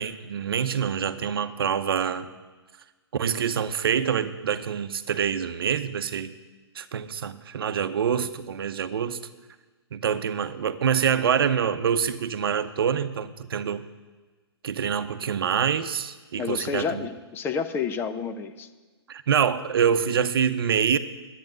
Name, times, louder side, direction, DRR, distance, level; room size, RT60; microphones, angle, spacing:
voice 1, 0.0-2.3 3.1-6.3 6.7-9.2 9.9-13.9 14.6-17.1 19.1-21.0, right 7 dB, 60° right, 11 dB, 0.8 m, -26 dB
voice 2, 16.4-18.7, left 6 dB, 15° left, 9 dB, 0.7 m, -30 dB
10.5 x 9.1 x 9.0 m, 1.3 s
figure-of-eight pair, 125°, 14 cm